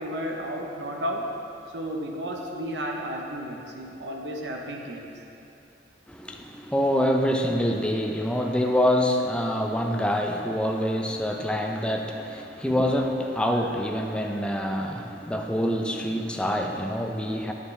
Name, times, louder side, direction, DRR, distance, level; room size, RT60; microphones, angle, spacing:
voice 1, 0.0-1.3 1.7-5.1, equal, 75° right, 1 dB, 0.7 m, -32 dB
voice 2, 6.1-17.5, equal, 5° left, 2 dB, 0.5 m, -26 dB
9.5 x 6.7 x 3.2 m, 2.8 s
head